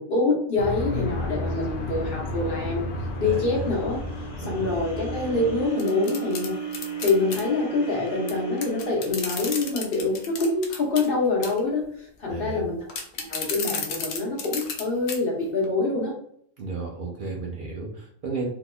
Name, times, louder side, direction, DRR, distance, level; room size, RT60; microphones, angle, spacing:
voice 1, 0.0-2.9 3.2-4.0 4.4-6.6 7.0-12.8 13.2-16.1, left 3 dB, 45° left, -2 dB, 1.1 m, -25 dB
sound 1, 0.6-5.7, left 2 dB, 60° left, 0.6 m, -32 dB
sound 2, 2.6-10.8, right 7 dB, 25° left, 1.4 m, -37 dB
voice 2, 3.2-3.7 4.4-4.8 12.3-12.6 16.6-18.5, right 3 dB, 55° right, -2 dB, 0.6 m, -33 dB
sound 3, 5.8-7.4 8.3-8.4 8.6-11.1 11.4-11.7 12.9-14.8 15.1-15.2 15.6-15.7, left 5 dB, 90° left, 1.1 m, -32 dB
3.9 x 2.7 x 2.3 m, 0.68 s
omnidirectional pair, 1.5 m